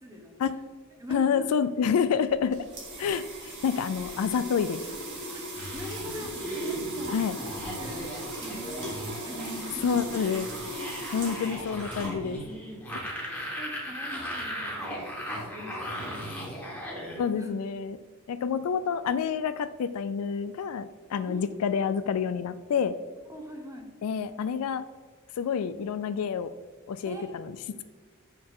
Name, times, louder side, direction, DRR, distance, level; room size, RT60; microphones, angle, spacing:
voice 1, 0.0-0.4 1.0-1.5 5.7-7.2 7.8-8.1 8.4-10.0 13.6-17.0 17.3-17.5 21.3-21.5 23.3-23.9 27.0-27.3, equal, 15° right, 2 dB, 1.1 m, -42 dB
voice 2, 1.1-2.6 3.0-4.8 7.1-7.4 9.8-10.5 11.1-12.4 17.2-18.0 18.3-22.9 24.0-24.8 25.4-26.5 26.9-27.6, left 6 dB, 80° left, 13 dB, 0.4 m, -28 dB
sound 1, 2.4-12.5, right 1 dB, 55° right, 2.3 m, -38 dB
sound 2, 5.6-17.2, equal, 5° left, 1.8 m, -37 dB
6.7 x 6.5 x 3.7 m, 1.5 s
head